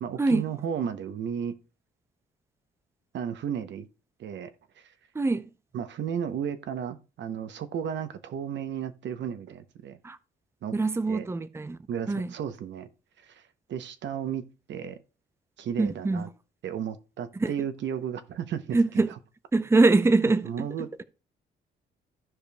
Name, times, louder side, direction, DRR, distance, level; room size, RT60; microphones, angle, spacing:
voice 1, 0.0-1.5 3.1-3.9 4.2-4.5 4.8-4.9 5.7-10.0 10.6-10.7 11.1-11.3 11.9-12.9 13.2-13.4 13.7-14.4 14.7-15.0 15.6-16.3 16.6-19.0 20.4-21.0, right 8 dB, 65° right, 0.8 m, -33 dB
voice 2, 5.1-5.5 10.0-10.2 10.7-11.8 12.1-12.3 15.8-16.3 17.4-17.5 18.7-19.1 19.5-20.7, right 3 dB, 15° right, 0.6 m, -23 dB
15.0 x 5.1 x 2.3 m
cardioid pair, 90°, 20 cm